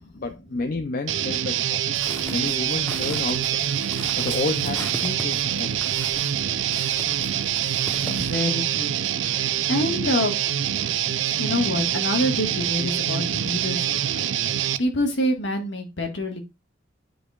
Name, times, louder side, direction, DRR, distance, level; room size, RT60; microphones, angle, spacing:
voice 1, 0.2-1.8 2.1-3.6 4.2-5.8, left 3 dB, 45° left, 0.5 m, -30 dB
Guitar, 1.1-14.8, right 10 dB, 70° right, 0.5 m, -25 dB
sound 1, 1.9-8.5, left 1 dB, 10° left, 0.9 m, -40 dB
voice 2, 8.0-10.3 11.4-16.4, left 1 dB, 65° left, 1.7 m, -27 dB
10.0 x 4.9 x 2.4 m
head